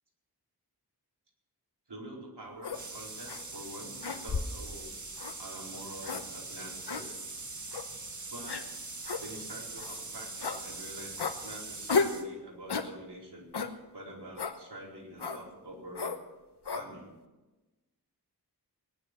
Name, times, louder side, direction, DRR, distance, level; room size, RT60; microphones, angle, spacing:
voice 1, 1.9-4.9 5.4-7.2 8.3-8.6 9.2-13.5 13.9-16.2 16.7-17.2, right 1 dB, 85° right, -3 dB, 4.7 m, -46 dB
sound 1, 2.6-2.8 3.3-3.4 4.0-4.6 5.2-5.4 6.0-6.2 6.9-7.0 7.7-7.9 8.5-8.6 9.0-9.2 9.8-10.0 10.4-10.6 11.2-11.4 11.9-12.2 12.7-12.9 13.5-13.7 14.4-14.6 15.2-15.4 15.9-16.2 16.6-16.9, left 4 dB, 80° left, 1.1 m, -32 dB
sound 2, 2.7-12.3, right 3 dB, 45° right, 1.6 m, -42 dB
19.0 x 11.0 x 6.2 m, 1.1 s
wide cardioid pair, 70°, 40 cm